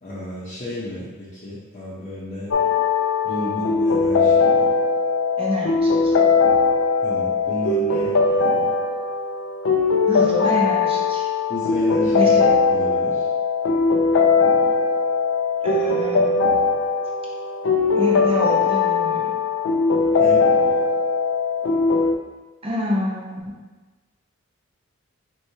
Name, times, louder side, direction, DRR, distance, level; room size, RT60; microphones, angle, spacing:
voice 1, 0.0-2.5 3.2-4.7 7.0-8.7 11.5-13.3 20.1-20.8, equal, 35° left, -10 dB, 0.8 m, -32 dB
sound 1, 2.5-22.1, left 4 dB, 60° left, 0.4 m, -20 dB
voice 2, 5.4-6.1 10.1-11.2 12.1-12.5 15.6-16.5 17.9-19.3 22.6-23.5, left 1 dB, 25° right, -3 dB, 0.8 m, -26 dB
4.6 x 3.1 x 2.8 m, 1.2 s
head